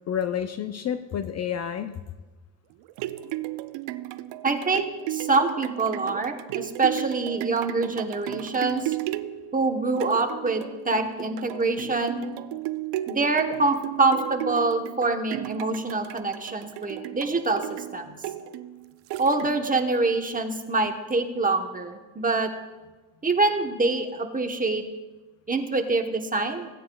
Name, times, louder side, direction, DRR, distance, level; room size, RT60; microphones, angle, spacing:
voice 1, 0.1-2.0 18.1-18.2, left 9 dB, 40° left, 9 dB, 0.5 m, -29 dB
sound 1, 2.7-19.8 20.3-20.4, right 15 dB, 75° right, 0.6 m, -34 dB
voice 2, 4.4-4.8 5.1-9.0 9.5-12.3 13.1-18.0 19.2-22.5 23.2-24.8 25.5-26.7, right 3 dB, 20° right, 5 dB, 1.0 m, -25 dB
16.5 x 9.4 x 2.3 m, 1.2 s
cardioid pair, 95°, 43 cm